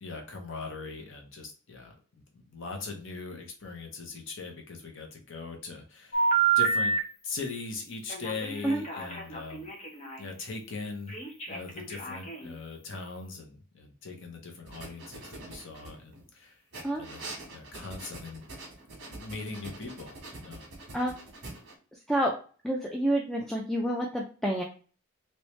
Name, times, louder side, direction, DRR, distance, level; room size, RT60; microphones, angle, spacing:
voice 1, 0.0-6.3 6.6-7.0 7.2-9.7 10.2-11.2 11.5-16.6 17.0-18.4 19.1-20.6, left 4 dB, 60° left, 2 dB, 0.8 m, -40 dB
Telephone, 6.1-7.0 8.1-10.2 11.1-12.5, right 5 dB, 30° left, 0.9 m, -29 dB
sound 1, 14.7-16.2 16.7-21.7, right 2 dB, 55° right, 1.4 m, -44 dB
voice 2, 22.6-24.6, right 1 dB, ahead, -1 dB, 0.3 m, -28 dB
3.1 x 3.0 x 3.1 m, 0.39 s
head